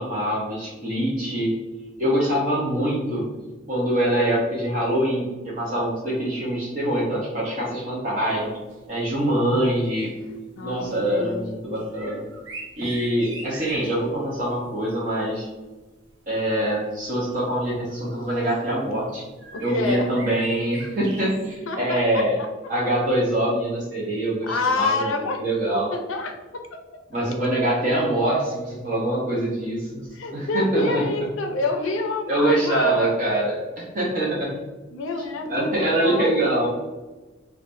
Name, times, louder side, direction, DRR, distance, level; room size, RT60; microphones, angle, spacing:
voice 1, 0.0-1.5 2.0-3.3 3.7-8.6 8.9-10.1 10.6-12.3 12.8-15.5 16.3-19.2 19.6-22.4 22.7-25.1 25.4-25.9 27.1-31.1 32.3-34.5 35.5-36.7, right 1 dB, 40° right, -6 dB, 0.7 m, -24 dB
sound 1, 8.7-8.8 9.2-9.3 9.8-10.4 10.8-11.0 11.7-14.1 16.2-16.3 17.3-17.4 18.0-18.6 19.4-21.6, right 2 dB, 80° right, 0.7 m, -40 dB
voice 2, 10.6-11.6 19.5-20.1 21.7-22.2 24.4-25.4 25.9-26.8 30.1-33.1 34.9-35.7 36.0-36.5, left 3 dB, 80° left, 4 dB, 0.5 m, -27 dB
4.6 x 2.2 x 2.5 m, 1.2 s
head